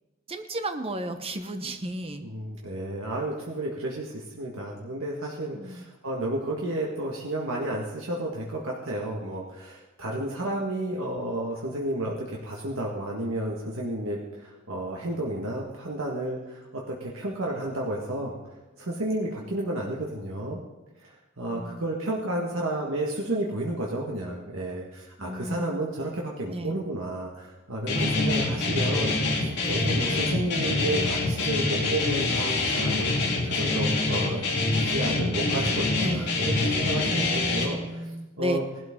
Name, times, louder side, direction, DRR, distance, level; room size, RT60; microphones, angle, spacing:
voice 1, 0.3-2.3 5.5-5.9 21.5-22.1 25.2-25.9 26.5-26.7 27.9-28.4 29.6-29.9 35.2-36.4 37.0-38.6, right 1 dB, 30° right, 8 dB, 1.0 m, -34 dB
voice 2, 2.2-18.4 18.8-20.6 21.0-38.6, right 1 dB, 80° right, -2 dB, 1.7 m, -32 dB
Guitar, 27.9-37.6, left 3 dB, 55° left, 3.3 m, -25 dB
18.5 x 12.5 x 3.7 m, 1.1 s
head